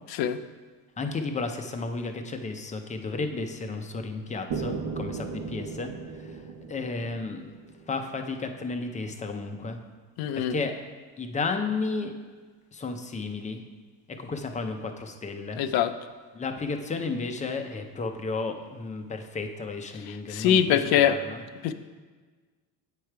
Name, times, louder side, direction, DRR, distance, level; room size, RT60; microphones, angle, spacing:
voice 1, 1.0-5.9 6.2-6.4 6.7-7.5 7.9-9.8 10.3-10.7 11.2-12.1 12.7-13.6 14.1-15.6 16.3-21.4, left 3 dB, 20° left, 6 dB, 0.5 m, -33 dB
sound 1, 4.5-8.4, right 4 dB, 60° right, 0.9 m, -36 dB
voice 2, 10.2-10.5 15.6-15.9 20.3-21.2 21.6-21.7, left 9 dB, 65° left, 11 dB, 0.6 m, -22 dB
8.4 x 5.0 x 4.5 m, 1.4 s
cardioid pair, 135°, 40 cm